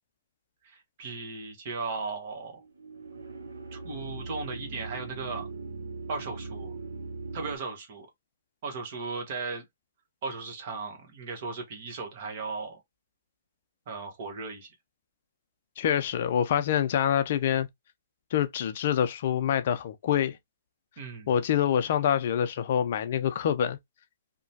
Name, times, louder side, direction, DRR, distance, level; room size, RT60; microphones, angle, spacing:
voice 1, 0.6-2.6 3.7-5.5 6.1-6.7 7.3-8.1 8.6-9.6 10.2-12.8 13.9-14.7 21.0-21.3, right 4 dB, 50° right, 1.2 m, -36 dB
sound 1, 2.5-7.6, right 3 dB, 80° right, 0.7 m, -40 dB
voice 2, 15.8-17.7 18.3-20.4 21.3-23.8, left 9 dB, 55° left, 0.4 m, -26 dB
2.9 x 2.2 x 2.7 m
hypercardioid pair, 130°, 0 cm